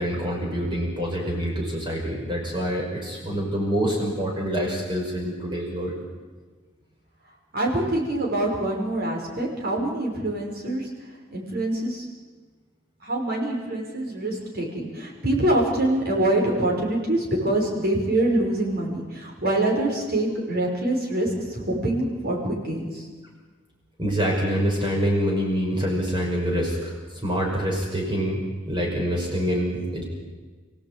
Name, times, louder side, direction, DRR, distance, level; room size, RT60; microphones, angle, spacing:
voice 1, 0.0-5.9 24.0-26.9 27.2-30.0, equal, 25° right, -2 dB, 5.7 m, -26 dB
voice 2, 7.5-10.9 11.3-12.1 13.0-23.1, right 1 dB, 55° right, 0 dB, 5.9 m, -25 dB
30.0 x 17.5 x 9.0 m, 1.4 s
head